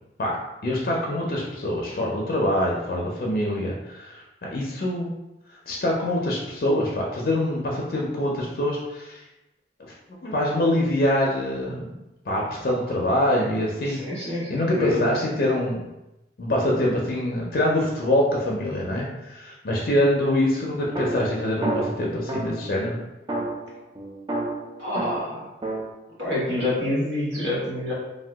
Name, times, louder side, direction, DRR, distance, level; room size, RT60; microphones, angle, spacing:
voice 1, 0.6-5.1 5.7-9.2 10.2-11.9 12.3-14.0 14.3-15.8 16.4-23.0, left 1 dB, 55° left, -3 dB, 0.5 m, -24 dB
voice 2, 13.9-15.1 24.8-25.4 26.2-27.9, left 1 dB, 80° right, -7 dB, 1.2 m, -27 dB
sound 1, 20.9-22.7 23.3-25.9, right 1 dB, 25° right, 0.3 m, -30 dB
2.8 x 2.2 x 3.3 m, 0.95 s
head